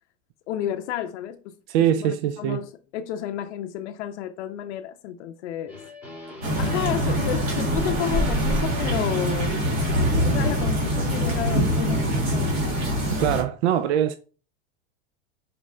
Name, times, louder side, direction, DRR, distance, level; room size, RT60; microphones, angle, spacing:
voice 1, 0.5-1.5 2.0-5.8 6.6-9.6 10.2-12.8, left 11 dB, 85° left, 0.5 m, -31 dB
voice 2, 1.7-2.6 13.2-14.2, right 10 dB, 75° right, 0.5 m, -22 dB
sound 1, 5.7-12.6, left 4 dB, 5° right, 1.8 m, -38 dB
sound 2, 6.4-13.4, equal, 40° right, 1.8 m, -24 dB
4.6 x 3.2 x 3.7 m
supercardioid pair, 165°, 34 cm